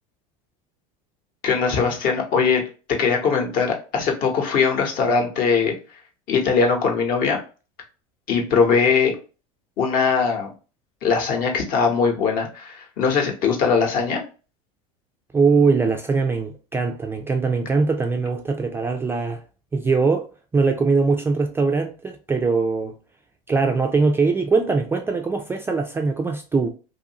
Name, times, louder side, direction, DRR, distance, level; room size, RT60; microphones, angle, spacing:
voice 1, 1.4-2.6 3.0-5.7 6.3-7.4 8.3-9.2 9.8-10.5 11.0-14.2, left 5 dB, 50° left, 1.0 m, -20 dB
voice 2, 15.3-19.4 19.7-23.0 23.5-26.7, right 4 dB, 10° right, 0.3 m, -21 dB
2.7 x 2.5 x 2.8 m
supercardioid pair, 115°, 19 cm